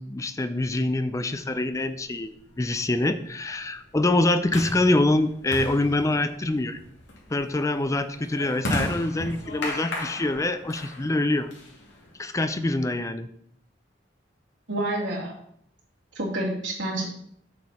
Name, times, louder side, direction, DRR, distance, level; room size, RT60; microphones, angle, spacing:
voice 1, 0.0-6.8 7.3-11.5 12.2-13.3, left 2 dB, 15° left, 10 dB, 0.4 m, -25 dB
sound 1, 1.8-12.2, left 1 dB, 80° left, 2.5 m, -36 dB
voice 2, 14.7-15.3 16.1-17.0, right 1 dB, 85° right, -2 dB, 2.7 m, -28 dB
7.8 x 6.8 x 4.2 m, 0.67 s
head